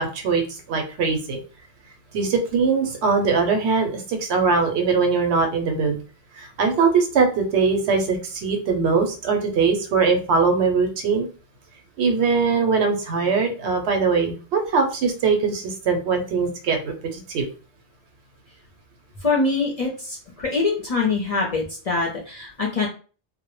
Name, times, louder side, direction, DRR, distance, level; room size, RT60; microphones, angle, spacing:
voice 1, 0.0-1.4 2.1-6.0 6.4-11.3 12.0-17.5, right 5 dB, 80° right, 5 dB, 0.8 m, -21 dB
voice 2, 19.2-22.9, left 3 dB, 45° left, -2 dB, 0.5 m, -24 dB
2.1 x 2.0 x 3.0 m, 0.37 s
omnidirectional pair, 1.1 m